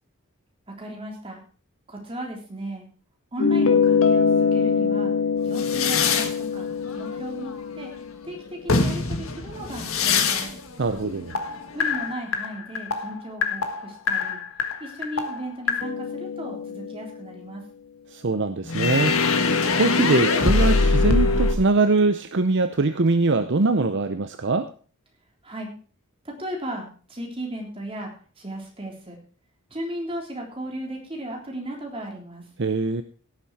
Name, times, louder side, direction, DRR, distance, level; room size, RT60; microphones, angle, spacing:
voice 1, 0.8-1.4 1.9-2.9 3.3-5.1 5.4-6.7 7.0-7.9 8.2-10.6 11.7-14.4 14.8-17.6 25.4-25.7 26.3-29.2 29.7-32.5, right 1 dB, 25° right, 0 dB, 3.5 m, -35 dB
sound 1, 3.4-8.3 8.7-10.6 10.9-17.1 18.7-21.5, left 4 dB, 70° left, 1.6 m, -23 dB
voice 2, 10.8-11.3 18.1-19.2 19.7-24.7 32.6-33.0, right 3 dB, 55° right, 10 dB, 0.7 m, -22 dB
17.5 x 7.1 x 4.8 m, 0.40 s
head